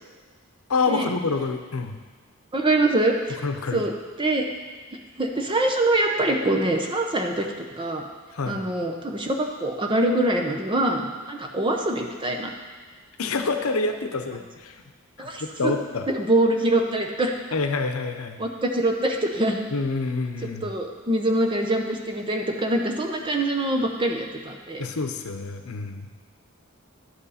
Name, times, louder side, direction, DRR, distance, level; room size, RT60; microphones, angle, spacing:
voice 1, 0.7-2.0 3.3-3.8 8.3-8.6 13.2-14.8 15.2-16.1 17.5-18.4 19.7-20.7 24.8-26.1, left 3 dB, 85° left, 7 dB, 0.7 m, -27 dB
voice 2, 2.5-3.1 3.7-3.9 4.2-4.4 5.2-7.5 7.8-8.0 8.4-12.5 15.2-15.8 16.1-17.3 18.4-19.6 20.6-24.9, right 1 dB, 25° right, 2 dB, 0.9 m, -24 dB
11.5 x 8.1 x 4.2 m, 1.4 s
head